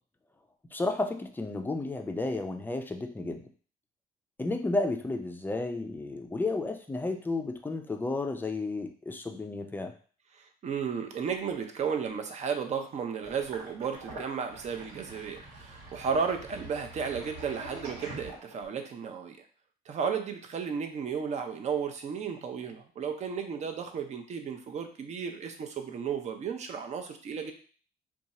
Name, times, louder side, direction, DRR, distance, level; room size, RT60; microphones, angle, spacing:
voice 1, 0.7-3.4 4.4-9.9, left 2 dB, 10° left, 5 dB, 0.4 m, -32 dB
voice 2, 10.3-19.4 19.9-27.5, right 6 dB, 40° right, 5 dB, 0.6 m, -34 dB
Sink (filling or washing), 13.2-18.8, right 2 dB, 85° right, 1.3 m, -45 dB
2.6 x 2.3 x 4.0 m, 0.42 s
cardioid pair, 110°, 17 cm